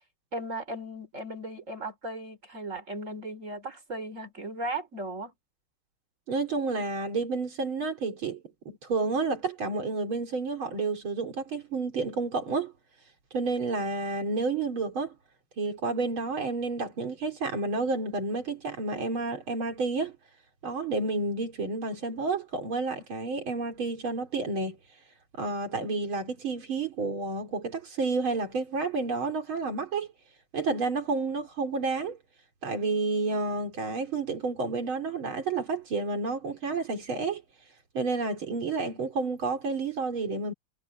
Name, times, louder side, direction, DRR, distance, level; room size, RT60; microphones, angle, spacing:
voice 1, 0.3-5.3, right 1 dB, 35° right, 3.9 m, -36 dB
voice 2, 6.3-12.7 13.3-15.1 15.6-20.1 20.6-24.8 25.4-30.1 30.5-32.2 32.6-37.4 37.9-40.5, right 3 dB, 85° right, 4.0 m, -30 dB
omnidirectional pair, 2.2 m